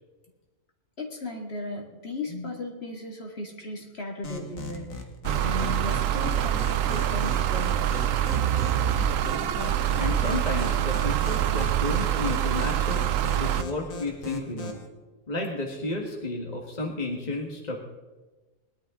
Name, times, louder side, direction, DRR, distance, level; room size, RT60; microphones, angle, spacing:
voice 1, 1.0-5.0 5.4-7.9, left 2 dB, 50° left, 1 dB, 2.5 m, -36 dB
sound 1, 4.2-14.9, left 2 dB, 80° left, 2.0 m, -39 dB
sound 2, 5.2-13.6, right 11 dB, 80° right, 1.0 m, -25 dB
voice 2, 10.0-13.0 13.4-14.8 15.3-17.8, left 2 dB, 30° left, 0 dB, 1.8 m, -32 dB
20.5 x 12.0 x 3.8 m, 1.2 s
omnidirectional pair, 1.4 m